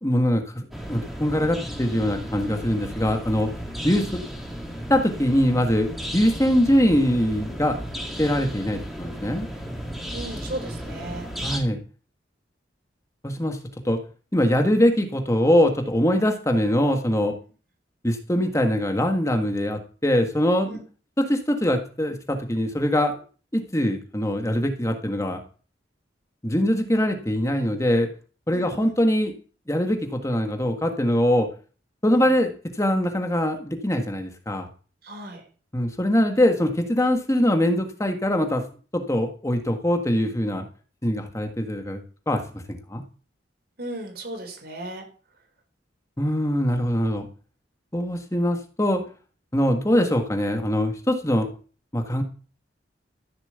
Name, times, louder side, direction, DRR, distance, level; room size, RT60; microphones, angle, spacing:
voice 1, 0.0-3.5 3.8-4.2 4.9-7.8 8.2-9.5 11.4-11.8 13.2-13.6 13.8-14.0 14.3-17.3 18.0-20.8 21.2-23.2 23.5-25.4 26.4-28.1 28.5-29.3 29.7-31.5 32.0-34.7 35.7-38.6 38.9-40.7 41.0-42.0 42.3-42.4 42.7-43.0 46.2-47.3 47.9-49.0 49.5-51.5 51.9-52.2, equal, 15° left, 4 dB, 1.6 m, -22 dB
sound 1, 0.7-11.6, equal, ahead, 3.3 m, -34 dB
voice 2, 10.1-11.3 20.7-20.8 28.5-28.9 32.1-32.2 35.0-35.4 43.8-45.1, right 1 dB, 60° right, 3 dB, 4.9 m, -36 dB
14.5 x 7.5 x 8.0 m, 0.39 s
head